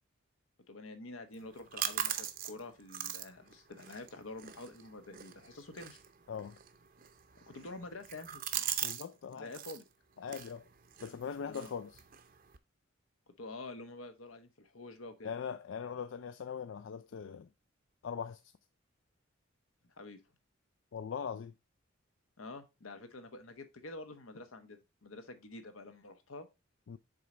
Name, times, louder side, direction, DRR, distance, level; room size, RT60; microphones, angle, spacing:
voice 1, 0.7-6.0 7.5-8.7 9.3-9.8 11.4-11.7 13.4-15.3 20.0-20.2 22.4-26.5, left 2 dB, 80° left, 1.1 m, -48 dB
sound 1, 1.3-9.1 9.3-9.8 10.2-12.6, right 10 dB, 45° right, 0.6 m, -41 dB
voice 2, 6.3-6.6 8.8-9.5 10.2-10.6 11.0-12.0 15.2-17.5 18.0-18.4 20.9-21.5 26.9-27.0, left 7 dB, 65° left, 0.4 m, -41 dB
6.6 x 3.9 x 4.3 m
head